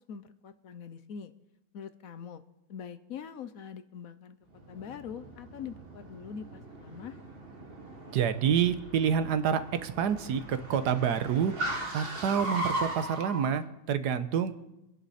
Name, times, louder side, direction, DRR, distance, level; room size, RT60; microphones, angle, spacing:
voice 1, 0.1-1.3 1.7-2.4 2.7-4.4 4.7-7.2, left 7 dB, 65° left, 12 dB, 1.1 m, -43 dB
Car, 4.5-13.5, right 1 dB, 35° right, 1.9 m, -39 dB
voice 2, 8.1-11.5 11.9-14.5, right 8 dB, 80° right, 11 dB, 1.5 m, -28 dB
25.5 x 10.0 x 4.2 m, 0.93 s
omnidirectional pair, 1.7 m